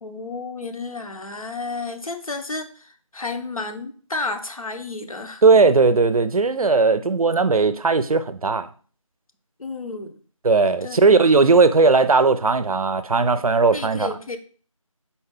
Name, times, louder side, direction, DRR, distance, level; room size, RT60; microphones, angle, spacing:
voice 1, 0.0-5.4 9.6-10.2 10.8-11.2 13.7-14.4, left 3 dB, 80° left, 0.7 m, -32 dB
voice 2, 5.4-8.7 10.4-14.1, right 4 dB, 85° right, 0.4 m, -17 dB
4.1 x 2.3 x 3.5 m
figure-of-eight pair, 175°, 18 cm